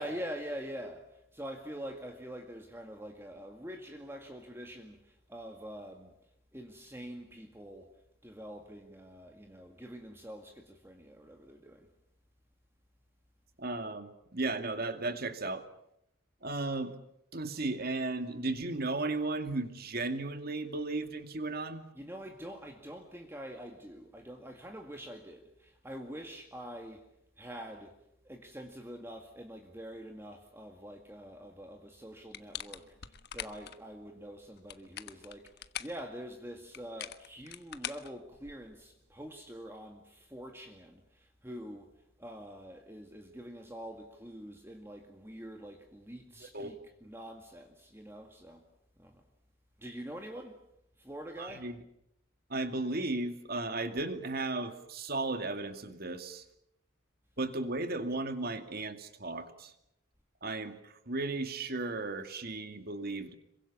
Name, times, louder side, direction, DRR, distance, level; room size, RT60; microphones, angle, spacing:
voice 1, 0.0-6.1 6.5-7.9 8.2-11.9 22.0-27.0 27.4-28.0 28.3-41.9 42.2-46.8 47.0-48.6 49.0-49.2 49.8-50.6 51.0-51.7, equal, 10° right, 2.0 m, -45 dB
voice 2, 13.6-15.6 16.4-16.9 17.3-21.8 46.4-46.8 51.4-51.8 52.5-56.4 57.4-59.7 60.4-63.3, right 2 dB, 45° right, 2.3 m, -35 dB
sound 1, 32.3-33.8 34.5-36.0 36.7-38.8, left 10 dB, 50° left, 1.3 m, -43 dB
27.0 x 23.5 x 7.2 m
head